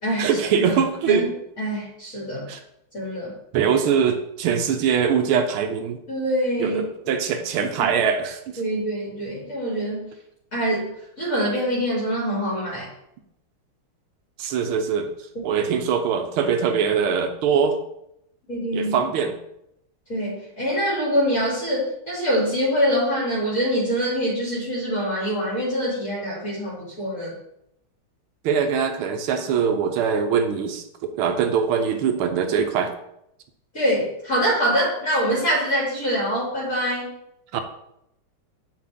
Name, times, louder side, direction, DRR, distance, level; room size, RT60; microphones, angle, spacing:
voice 1, 0.2-1.3 2.5-2.6 3.5-6.0 6.6-8.6 14.4-15.1 15.4-17.8 18.7-19.3 28.4-32.9 37.5-37.6, right 7 dB, 80° right, 7 dB, 1.6 m, -22 dB
voice 2, 1.6-2.5 2.9-3.3 6.1-6.8 8.6-10.1 10.5-12.8 18.5-19.0 20.1-27.3 33.7-37.1, equal, 40° left, -8 dB, 3.1 m, -24 dB
8.0 x 5.9 x 3.6 m, 0.79 s
omnidirectional pair, 2.3 m